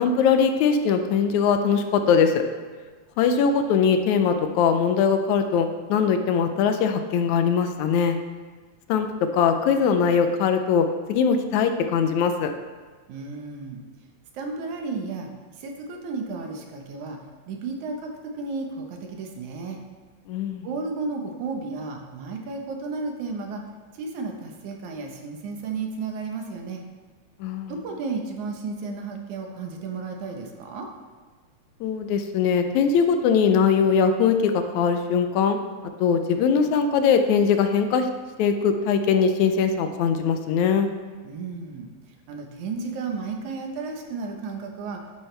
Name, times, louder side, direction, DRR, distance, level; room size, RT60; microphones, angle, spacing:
voice 1, 0.0-2.4 3.2-8.2 8.9-9.1 9.3-12.5 20.3-20.7 27.4-27.7 31.8-35.6 36.0-38.1 38.4-40.9, left 6 dB, 80° left, 7 dB, 2.1 m, -21 dB
voice 2, 13.1-13.8 14.3-17.2 17.5-19.8 20.6-23.6 23.9-26.8 27.7-30.9 41.2-41.9 42.3-45.0, right 4 dB, 85° right, 2 dB, 2.6 m, -33 dB
11.0 x 9.1 x 3.4 m, 1.4 s
omnidirectional pair, 3.3 m